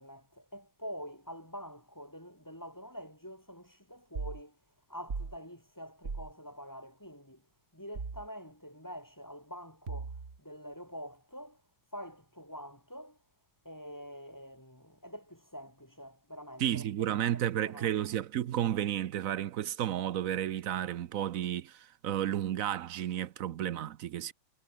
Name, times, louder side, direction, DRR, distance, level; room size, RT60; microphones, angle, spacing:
voice 1, 0.0-4.6 4.9-7.4 7.7-10.1 10.4-11.6 11.9-13.2 13.6-18.0, equal, 10° left, 3.2 m, -46 dB
sound 1, 4.2-4.4 5.1-5.4 6.0-6.3 8.0-8.3 9.9-10.4, right 4 dB, 35° right, 2.4 m, -37 dB
voice 2, 16.6-24.3, right 11 dB, 70° right, 0.8 m, -32 dB
omnidirectional pair, 2.2 m